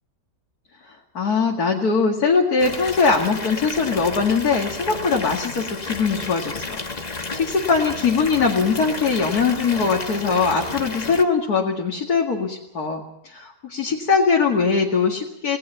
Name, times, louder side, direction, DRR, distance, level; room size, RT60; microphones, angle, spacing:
voice 1, 1.1-6.8 7.1-15.6, left 5 dB, 60° left, -1 dB, 2.6 m, -21 dB
Water tap faucet / Bathtub (filling or washing) / Fill (with liquid), 2.6-11.2, left 3 dB, 25° left, 1.2 m, -32 dB
28.0 x 18.5 x 5.8 m, 0.77 s
omnidirectional pair, 1.8 m